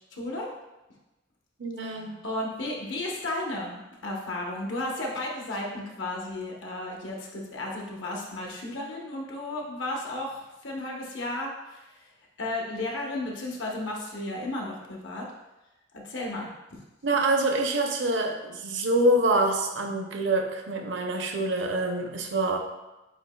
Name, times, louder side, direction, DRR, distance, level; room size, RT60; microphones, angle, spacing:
voice 1, 0.1-0.5 1.8-11.8 12.4-15.3 15.9-16.5, left 1 dB, 75° left, -1 dB, 1.0 m, -34 dB
voice 2, 1.6-2.2 17.0-22.6, right 2 dB, 70° right, 4 dB, 0.6 m, -26 dB
8.1 x 2.8 x 2.3 m, 1.0 s
head